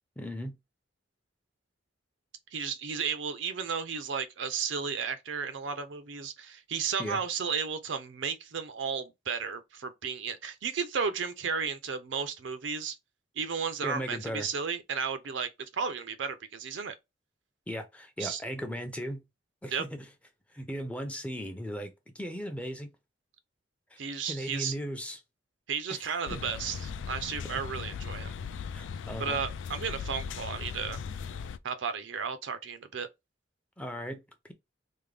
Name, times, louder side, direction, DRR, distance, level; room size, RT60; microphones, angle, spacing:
voice 1, 0.2-0.6 7.0-7.2 13.8-14.5 17.7-19.2 19.6-20.1 20.5-22.9 23.9-24.0 24.3-25.2 25.9-26.0 26.3-26.5 28.7-29.4 33.8-34.2, equal, 5° left, 0.5 m, -37 dB
voice 2, 2.5-13.0 13.4-16.9 18.2-18.4 19.7-19.8 24.0-24.7 25.7-28.3 29.2-31.0 31.6-33.1, right 6 dB, 85° right, 0.5 m, -33 dB
sound 1, 26.3-31.6, left 6 dB, 85° left, 0.3 m, -38 dB
3.5 x 2.1 x 3.3 m
head